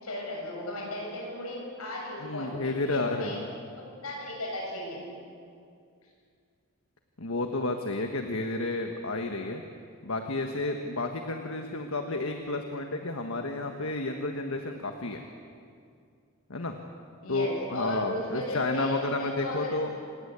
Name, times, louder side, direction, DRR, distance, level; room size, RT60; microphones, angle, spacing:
voice 1, 0.0-3.4 3.8-5.1 17.2-19.8, left 1 dB, 85° left, -2 dB, 7.7 m, -35 dB
voice 2, 2.2-3.5 7.2-9.6 10.0-15.2 16.5-16.7 17.3-19.9, left 2 dB, 70° left, 4 dB, 1.5 m, -31 dB
28.0 x 19.5 x 8.3 m, 2.3 s
head